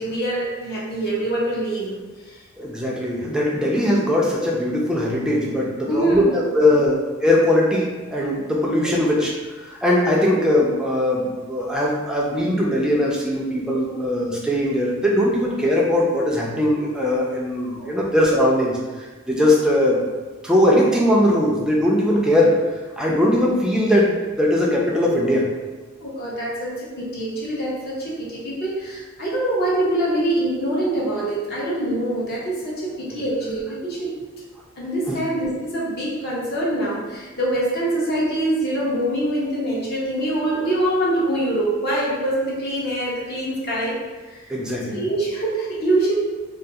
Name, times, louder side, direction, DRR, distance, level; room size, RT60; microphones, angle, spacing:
voice 1, 0.0-2.4 5.9-6.7 13.8-14.0 17.7-18.0 26.0-34.1 34.8-44.0 44.2-44.5 44.9-46.1, right 1 dB, 50° left, -6 dB, 0.7 m, -24 dB
voice 2, 2.6-6.9 7.2-7.9 8.1-9.3 9.7-18.8 19.3-20.0 20.4-22.7 23.0-25.5 33.1-33.2 35.1-35.2 44.5-45.0, left 1 dB, 5° right, -4 dB, 0.4 m, -20 dB
2.3 x 2.3 x 2.7 m, 1.3 s
head